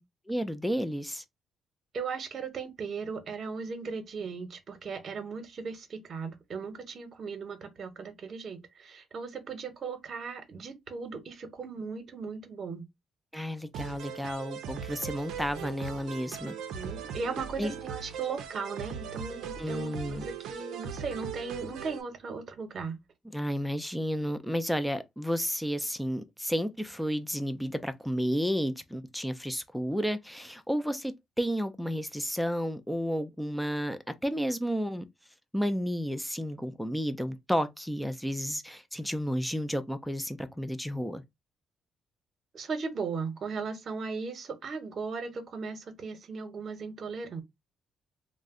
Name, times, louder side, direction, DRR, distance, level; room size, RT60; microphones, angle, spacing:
voice 1, 0.3-1.2 13.3-16.6 17.6-17.7 19.6-20.3 23.3-35.1 35.5-41.2, equal, ahead, 0.4 m, -32 dB
voice 2, 1.9-12.8 13.8-13.9 16.4-22.9 42.5-47.4, right 5 dB, 55° right, 0.9 m, -37 dB
sound 1, 13.7-22.0, right 7 dB, 85° right, 0.5 m, -39 dB
2.5 x 2.1 x 3.6 m
cardioid pair, 90°, 0 cm